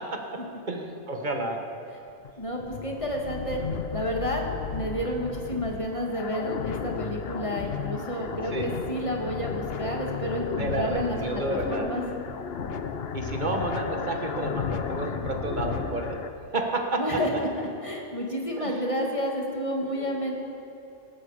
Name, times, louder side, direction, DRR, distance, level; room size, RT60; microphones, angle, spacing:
voice 1, 0.6-1.6 8.4-8.7 10.6-11.9 13.1-16.2 16.5-17.2 18.6-18.7 19.9-20.2, right 2 dB, 40° right, 3 dB, 1.6 m, -30 dB
sound 1, 2.1-16.3, left 6 dB, 55° left, 0.9 m, -34 dB
voice 2, 2.4-3.6 3.9-12.0 17.0-17.5 17.8-20.4, equal, 25° left, 0 dB, 2.0 m, -30 dB
18.5 x 14.5 x 5.0 m, 2.8 s
omnidirectional pair, 1.3 m